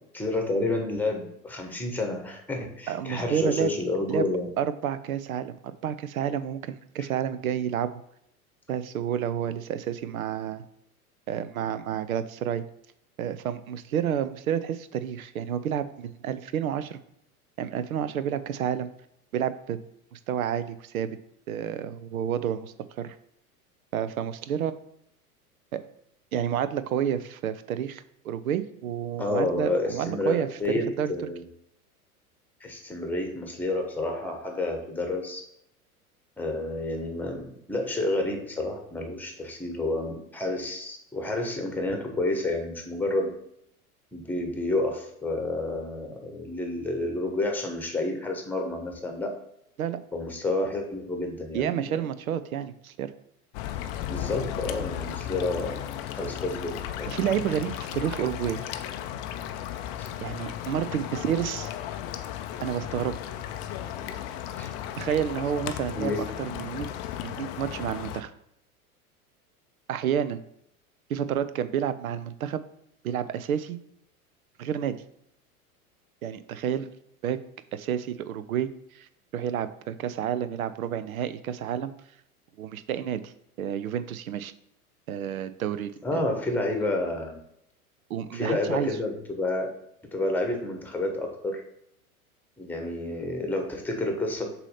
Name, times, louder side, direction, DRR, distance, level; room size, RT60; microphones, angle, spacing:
voice 1, 0.1-4.5 29.2-31.4 32.6-35.4 36.4-43.3 44.1-49.3 50.1-52.0 54.1-55.8 56.1-57.1 60.0-60.1 64.0-64.1 64.6-64.7 66.0-66.2 86.0-87.4 88.3-89.7 90.1-91.6 92.6-94.5, left 2 dB, 5° left, 3 dB, 1.1 m, -30 dB
voice 2, 2.9-3.7 4.1-4.3 4.6-7.9 8.7-10.7 11.3-12.6 13.2-17.0 17.6-18.9 19.3-19.8 20.1-21.1 21.5-23.2 23.9-24.7 25.7-25.8 26.3-31.1 49.8-50.0 51.5-53.1 57.1-58.7 60.2-61.7 62.6-63.2 65.0-66.1 66.4-66.9 67.2-68.3 69.9-70.4 71.1-72.6 73.0-73.8 74.6-75.0 76.2-76.9 77.2-77.4 77.7-78.7 78.9-79.1 79.3-81.9 82.6-83.3 83.6-84.5 85.1-86.2 88.1-88.9, right 9 dB, 70° right, 13 dB, 0.6 m, -30 dB
sound 1, 53.5-68.2, left 11 dB, 30° left, 0.5 m, -35 dB
6.8 x 2.8 x 5.6 m, 0.76 s
figure-of-eight pair, 90°, 45 cm